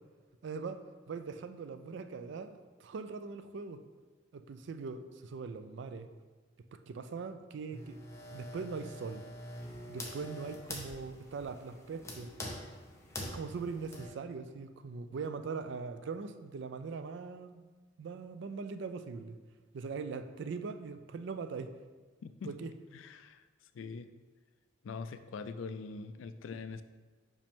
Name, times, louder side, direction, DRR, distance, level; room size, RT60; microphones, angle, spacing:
voice 1, 0.4-3.8 4.3-6.1 6.7-8.0 8.3-9.2 9.9-12.3 13.3-17.7 18.0-19.4 19.7-21.7 22.4-22.7, right 4 dB, 65° right, 10 dB, 0.4 m, -41 dB
sound 1, 7.7-14.1, left 1 dB, 15° left, 0.8 m, -45 dB
voice 2, 22.2-22.5 22.9-23.4 23.7-24.1 24.8-26.8, left 4 dB, 80° left, 11 dB, 0.3 m, -43 dB
5.2 x 5.1 x 3.6 m, 1.4 s
head